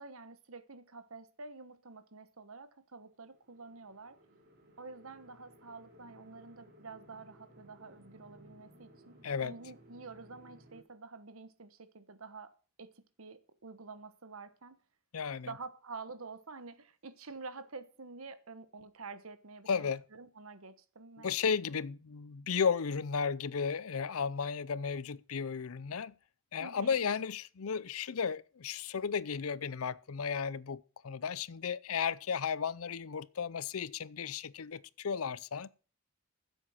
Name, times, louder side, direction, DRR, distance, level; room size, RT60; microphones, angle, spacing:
voice 1, 0.0-4.2 4.8-12.5 12.8-12.9 13.2-14.8 15.5-21.3 26.6-27.0, right 4 dB, 75° right, 1.3 m, -48 dB
sound 1, 3.2-10.8, right 1 dB, 50° right, 2.7 m, -60 dB
voice 2, 9.2-9.5 15.1-15.5 19.7-20.0 21.2-26.1 26.5-35.7, left 6 dB, 80° left, 0.6 m, -34 dB
14.5 x 7.9 x 5.6 m
head